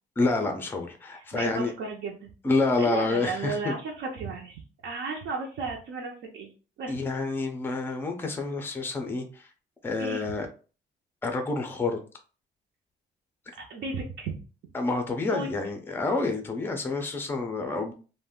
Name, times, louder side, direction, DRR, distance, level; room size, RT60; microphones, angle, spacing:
voice 1, 0.2-1.7 2.4-3.7 6.9-9.5 9.8-10.5 11.2-12.0 14.7-17.9, left 3 dB, 10° left, 5 dB, 0.4 m, -28 dB
voice 2, 1.1-2.3 2.8-6.5 6.8-7.0 10.0-10.2 13.6-14.3 15.2-15.5, right 4 dB, 70° right, -1 dB, 0.6 m, -34 dB
2.5 x 2.1 x 3.5 m, 0.36 s
cardioid pair, 165°, 20 cm